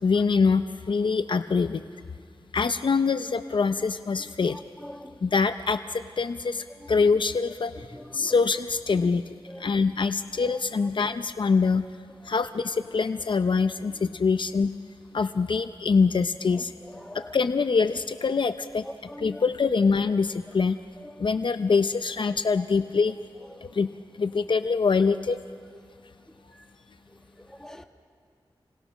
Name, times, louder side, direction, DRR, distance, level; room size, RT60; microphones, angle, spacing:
voice 1, 0.0-1.8 2.5-4.6 5.2-7.9 8.1-11.8 12.2-14.7 15.1-16.7 17.1-18.9 19.2-20.8 21.2-23.2 23.6-23.9 24.1-25.4, left 4 dB, 65° left, 10 dB, 0.6 m, -24 dB
voice 2, 4.4-5.2 7.9-8.3 8.9-9.1 9.5-9.7 10.4-10.6 16.9-17.3 18.8-19.4 21.2-21.3 23.5-23.7 26.0-26.1 27.1-27.8, left 1 dB, 5° left, 4 dB, 1.7 m, -43 dB
29.0 x 20.0 x 6.4 m, 2.2 s
wide cardioid pair, 70°, 9 cm